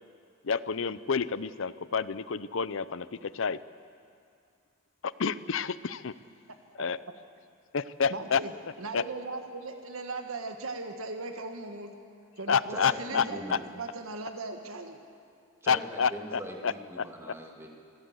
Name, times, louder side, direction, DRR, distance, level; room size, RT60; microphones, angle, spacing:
voice 1, 0.4-3.6 5.0-6.2 6.8-7.0 7.7-8.4 8.9-9.0 12.5-13.2 13.5-13.6 15.7-17.0, left 6 dB, 65° left, 16 dB, 0.6 m, -29 dB
voice 2, 8.1-8.5 8.8-11.9 12.4-15.0, right 3 dB, 85° right, 5 dB, 1.5 m, -38 dB
voice 3, 12.7-13.6 15.6-17.7, equal, 15° right, 0 dB, 2.3 m, -41 dB
25.5 x 16.0 x 8.1 m, 2.4 s
head